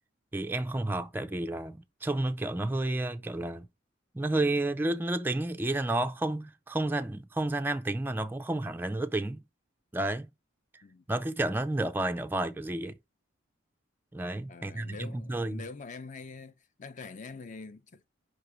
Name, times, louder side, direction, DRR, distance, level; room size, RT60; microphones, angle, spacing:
voice 1, 0.3-3.7 4.1-9.4 9.9-10.3 10.7-10.8 11.1-13.0 14.1-15.6, right 2 dB, 10° right, 0.4 m, -31 dB
voice 2, 14.5-16.5 16.8-18.1, left 4 dB, 40° left, 0.6 m, -44 dB
5.0 x 3.8 x 4.8 m
head